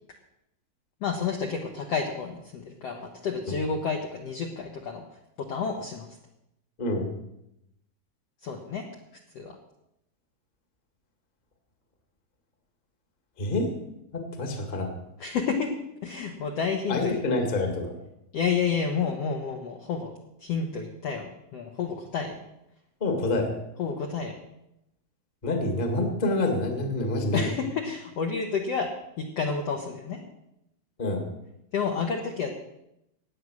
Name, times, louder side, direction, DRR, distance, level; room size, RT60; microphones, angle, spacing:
voice 1, 1.0-5.0 5.5-6.1 8.4-8.8 9.4-9.6 15.2-15.7 16.0-17.1 18.3-22.3 23.8-24.4 27.3-28.9 29.2-30.2 31.7-32.5, left 5 dB, 65° left, 2 dB, 1.6 m, -30 dB
voice 2, 6.8-7.1 13.4-13.7 14.1-14.9 16.9-17.9 23.0-23.5 25.4-27.5 31.0-31.3, left 2 dB, 25° left, 4 dB, 1.2 m, -27 dB
15.0 x 9.5 x 6.3 m, 0.84 s
omnidirectional pair, 4.3 m